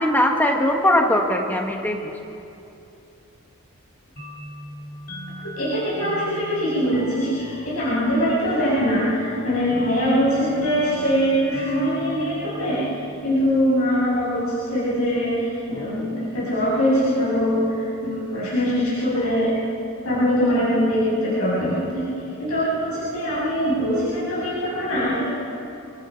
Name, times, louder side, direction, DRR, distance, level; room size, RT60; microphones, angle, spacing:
voice 1, 0.0-2.1, left 1 dB, 10° left, 2 dB, 1.5 m, -20 dB
sound 1, 4.2-13.5, left 1 dB, 45° left, 3.6 m, -39 dB
voice 2, 5.6-12.8 13.2-19.6 20.0-22.1 22.4-25.3, equal, 90° left, -9 dB, 7.4 m, -22 dB
29.5 x 23.0 x 5.3 m, 2.7 s
head